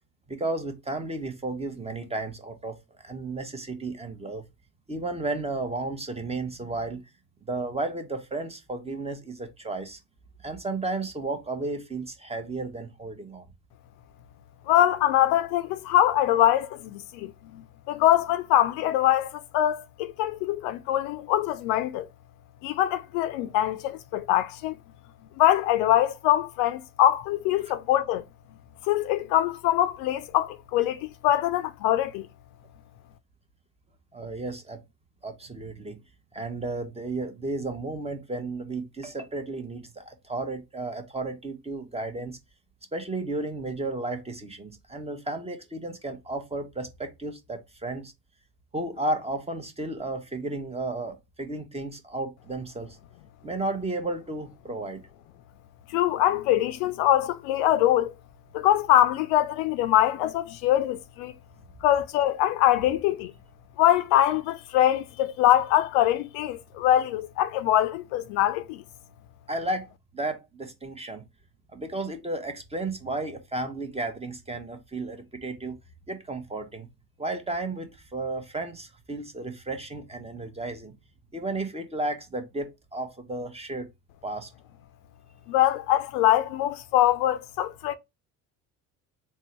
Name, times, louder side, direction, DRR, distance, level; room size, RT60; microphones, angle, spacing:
voice 1, 0.3-4.5 4.9-7.0 7.5-10.0 10.4-13.4 23.4-23.5 34.1-34.8 35.2-36.0 36.3-42.4 42.9-48.1 48.7-53.0 53.4-55.0 69.5-69.9 70.1-71.2 71.7-75.8 76.1-76.9 77.2-80.9 81.3-83.9 84.2-84.5, right 2 dB, 15° right, 0.8 m, -33 dB
voice 2, 14.7-22.1 22.6-24.8 25.4-28.2 28.8-32.3 55.9-58.1 58.5-61.3 61.8-63.3 63.8-68.8 85.5-87.9, left 12 dB, 60° left, 0.5 m, -23 dB
3.6 x 2.2 x 4.3 m
hypercardioid pair, 60°, 47 cm